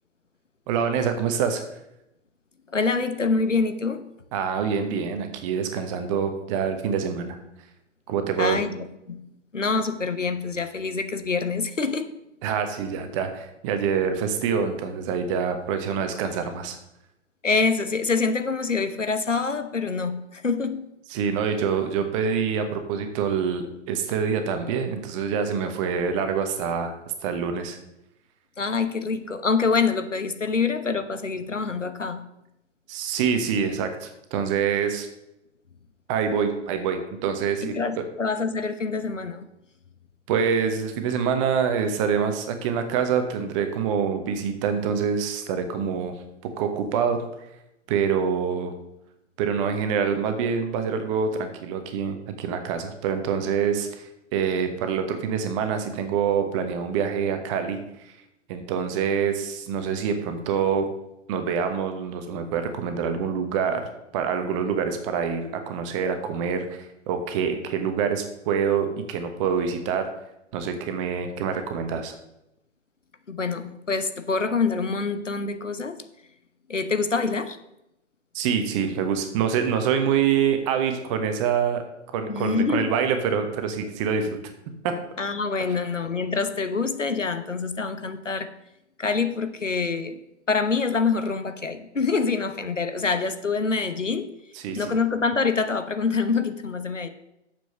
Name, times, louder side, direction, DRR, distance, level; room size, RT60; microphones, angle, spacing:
voice 1, 0.7-1.6 4.3-7.4 8.1-8.6 12.4-16.8 21.1-27.8 32.9-35.1 36.1-37.8 40.3-46.2 46.6-47.2 47.9-48.7 49.4-58.1 58.5-60.9 61.3-70.1 70.5-72.1 78.3-81.8 82.1-84.4 84.8-84.9 94.5-94.9, right 7 dB, 25° right, 7 dB, 1.1 m, -26 dB
voice 2, 2.7-4.0 8.4-8.7 9.1-9.2 9.5-12.1 17.4-20.8 28.6-32.2 37.6-39.5 73.3-76.0 76.7-77.6 82.3-82.9 85.2-88.5 89.0-90.2 90.5-94.3 94.7-97.1, left 4 dB, 85° left, 9 dB, 1.1 m, -25 dB
7.1 x 6.2 x 6.8 m, 0.85 s
figure-of-eight pair, 120°, 36 cm